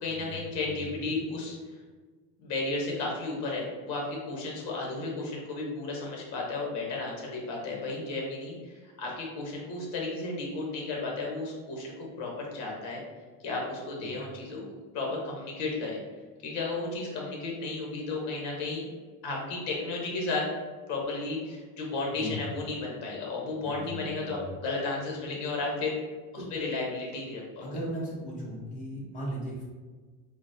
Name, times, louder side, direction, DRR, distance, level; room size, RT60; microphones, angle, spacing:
voice 1, 0.0-1.6 2.4-13.0 13.4-14.6 14.9-16.0 16.4-18.8 19.2-20.5 20.9-26.0 26.3-27.7, left 3 dB, 55° left, -2 dB, 0.9 m, -33 dB
voice 2, 23.6-24.4 26.4-26.5 27.6-29.6, equal, 20° left, -5 dB, 0.7 m, -37 dB
3.8 x 2.1 x 2.6 m, 1.4 s
cardioid pair, 175°, 34 cm